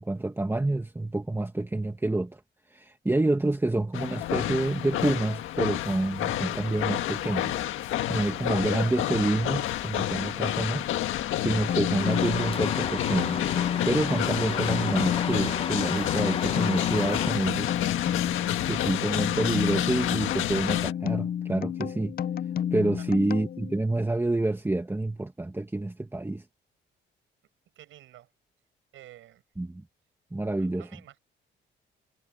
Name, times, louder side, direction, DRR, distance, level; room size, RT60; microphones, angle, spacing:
voice 1, 0.0-2.4 2.7-7.6 8.1-10.9 11.4-13.4 13.8-17.7 18.7-22.1 22.7-26.4 29.6-29.8 30.3-30.9, right 2 dB, 10° right, 1.8 m, -28 dB
sound 1, 3.9-20.9, left 13 dB, 85° left, 1.6 m, -30 dB
sound 2, 11.7-23.9, left 9 dB, 50° left, 0.6 m, -31 dB
sound 3, 12.0-17.3, left 4 dB, 30° left, 1.3 m, -35 dB
voice 2, 17.6-18.2 23.1-23.2 27.8-28.3 28.9-29.4 30.6-31.2, right 13 dB, 80° right, 7.4 m, -51 dB
cardioid pair, 90°, 20 cm